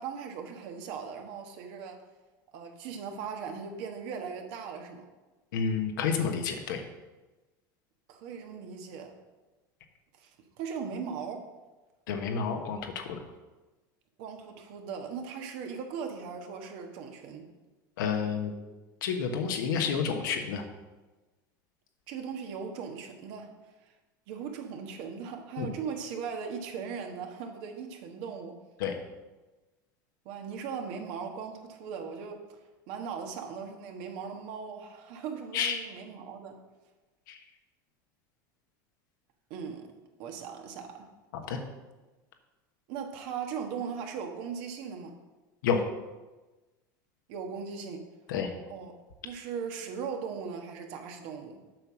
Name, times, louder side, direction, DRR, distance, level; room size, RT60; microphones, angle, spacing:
voice 1, 0.0-2.0 2.5-5.1 8.1-9.1 10.2-10.3 10.6-11.5 14.2-17.5 22.1-23.5 24.3-28.6 30.2-32.6 32.9-36.6 39.5-39.9 40.2-41.1 42.9-45.1 47.3-48.1 48.7-48.9 49.2-51.6, right 6 dB, 65° right, 4 dB, 1.5 m, -38 dB
voice 2, 5.5-6.8 12.1-13.2 18.0-18.5 19.0-20.6 25.6-25.7 28.8-29.0 35.5-35.8 37.3-37.4 41.5-41.6 45.6-45.8 48.3-48.5, left 6 dB, 80° left, 4 dB, 1.3 m, -29 dB
7.7 x 5.7 x 6.2 m, 1.2 s
supercardioid pair, 105°, 11 cm